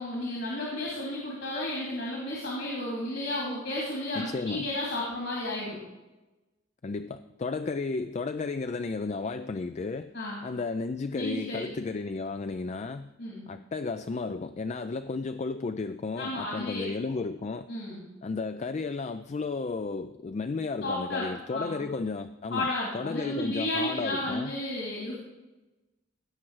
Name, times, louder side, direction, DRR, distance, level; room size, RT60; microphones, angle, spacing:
voice 1, 0.0-5.8 10.1-10.4 11.2-11.7 13.2-13.4 16.2-17.1 17.7-18.0 20.8-21.8 22.5-25.1, left 1 dB, 65° left, -3 dB, 2.6 m, -33 dB
voice 2, 4.1-4.7 6.8-10.1 10.4-13.1 13.5-17.7 18.2-22.7 22.9-24.5, left 4 dB, 35° left, 10 dB, 0.3 m, -33 dB
17.0 x 6.0 x 4.7 m, 1.1 s
head